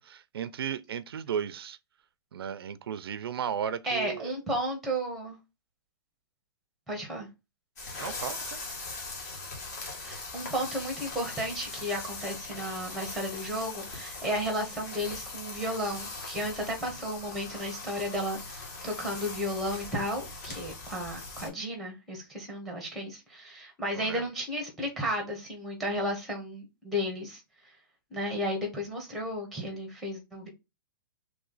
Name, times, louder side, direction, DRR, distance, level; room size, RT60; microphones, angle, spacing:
voice 1, 0.0-1.8 2.3-4.3 8.0-8.6 23.9-24.3, right 8 dB, 85° right, 0.5 m, -35 dB
voice 2, 3.8-5.4 6.9-7.3 10.0-27.4 28.1-30.5, equal, ahead, 0.9 m, -33 dB
sound 1, 7.8-21.5, left 3 dB, 45° left, 1.7 m, -40 dB
3.2 x 3.1 x 3.8 m
hypercardioid pair, 175°, 12 cm